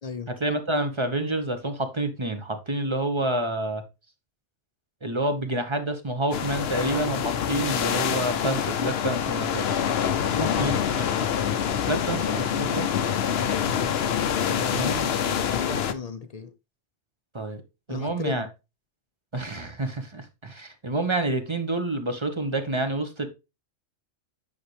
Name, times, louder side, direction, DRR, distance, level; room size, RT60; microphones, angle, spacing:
voice 1, 0.4-3.8 5.0-9.7 10.6-10.7 11.0-11.1 11.9-13.1 14.6-15.3 17.3-17.6 17.9-18.5 19.3-23.3, right 2 dB, 25° right, 1.2 m, -28 dB
sound 1, 6.3-15.9, left 8 dB, 65° left, 0.9 m, -26 dB
voice 2, 10.3-11.2 13.5-15.0 15.5-16.5 17.9-18.5, left 5 dB, 40° left, 0.7 m, -36 dB
8.9 x 5.7 x 3.3 m
omnidirectional pair, 1.2 m